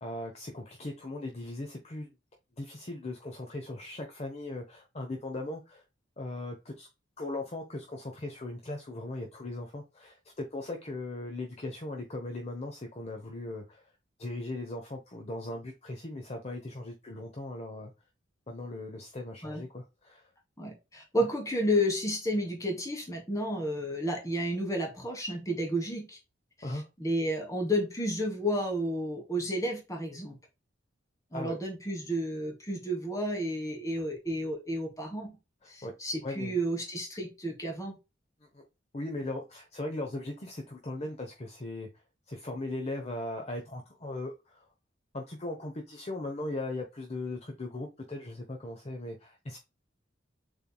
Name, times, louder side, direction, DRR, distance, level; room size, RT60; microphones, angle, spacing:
voice 1, 0.0-2.1 2.6-5.8 6.2-6.9 7.2-13.9 14.2-17.9 18.5-20.3 26.6-26.9 31.3-31.6 35.6-35.9 36.2-36.6 38.4-38.6 38.9-41.9 42.3-44.6 45.1-49.6, left 2 dB, 35° left, 0.8 m, -38 dB
voice 2, 20.6-26.2 26.7-30.3 31.3-35.3 35.7-38.0, equal, 15° left, 1.5 m, -31 dB
7.0 x 3.4 x 2.3 m
head